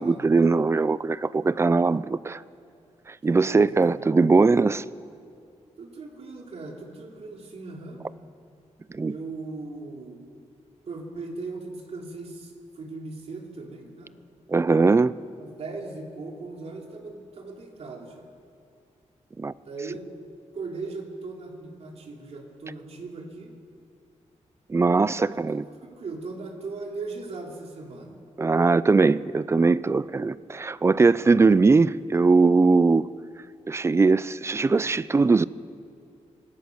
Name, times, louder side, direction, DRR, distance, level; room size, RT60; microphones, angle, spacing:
voice 1, 0.0-2.4 3.2-4.8 8.9-9.1 14.5-15.1 19.4-19.5 24.7-25.7 28.4-33.0 33.7-35.4, right 4 dB, 20° right, 0.4 m, -20 dB
voice 2, 3.3-4.0 5.8-8.0 9.1-10.2 10.9-14.1 15.4-18.2 19.7-20.0 20.5-23.5 25.2-25.4 25.8-28.1, right 3 dB, 55° right, 3.2 m, -38 dB
25.0 x 18.0 x 6.5 m
wide cardioid pair, 155°, 13 cm